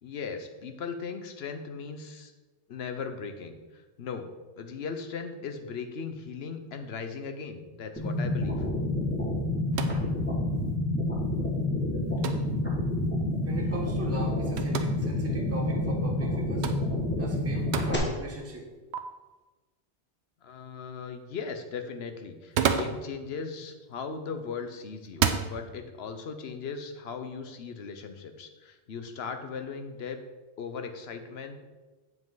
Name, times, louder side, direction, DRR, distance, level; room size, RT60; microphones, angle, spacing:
voice 1, 0.0-2.3 2.7-4.3 4.6-8.7 20.4-30.2 30.6-31.6, left 5 dB, 65° left, 7 dB, 1.1 m, -38 dB
sound 1, 8.0-18.0, left 1 dB, 10° left, 1.6 m, -28 dB
sound 2, 9.7-10.1 12.2-12.5 14.6-14.9 16.6-16.9 17.7-17.9 18.9-19.0 22.3-23.0 24.2-24.5 25.1-25.5, right 7 dB, 75° right, 0.9 m, -28 dB
voice 2, 13.4-16.7 17.2-18.7, right 1 dB, 15° right, 1 dB, 1.0 m, -38 dB
7.8 x 7.5 x 3.9 m, 1.2 s
omnidirectional pair, 1.2 m